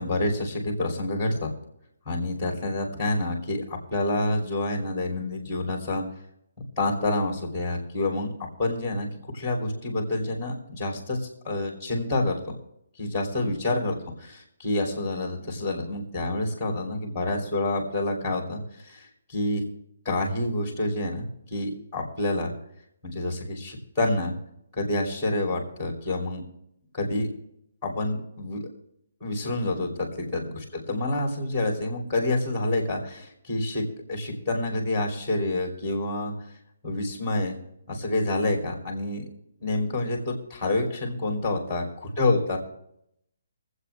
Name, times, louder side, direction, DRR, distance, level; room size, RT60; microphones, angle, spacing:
voice 1, 0.0-1.5 2.0-6.0 6.8-9.1 9.3-11.2 11.4-12.4 13.0-19.6 20.0-22.5 23.0-24.3 24.7-26.4 26.9-27.3 27.8-28.6 29.2-33.8 34.1-36.3 36.8-37.5 37.9-39.2 39.6-42.6, left 2 dB, ahead, 1 dB, 2.8 m, -28 dB
24.0 x 8.1 x 3.3 m, 0.75 s
hypercardioid pair, 180°, 0 cm